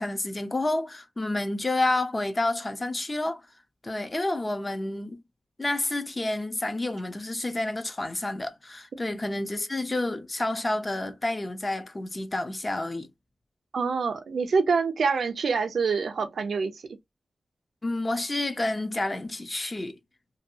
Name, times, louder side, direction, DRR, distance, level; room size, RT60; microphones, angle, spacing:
voice 1, 0.0-3.4 3.8-5.2 5.6-13.1 17.8-20.0, left 2 dB, 30° left, 0.5 m, -29 dB
voice 2, 13.7-16.8, right 5 dB, 85° right, 0.5 m, -26 dB
2.6 x 2.3 x 2.6 m
wide cardioid pair, 90°, 0 cm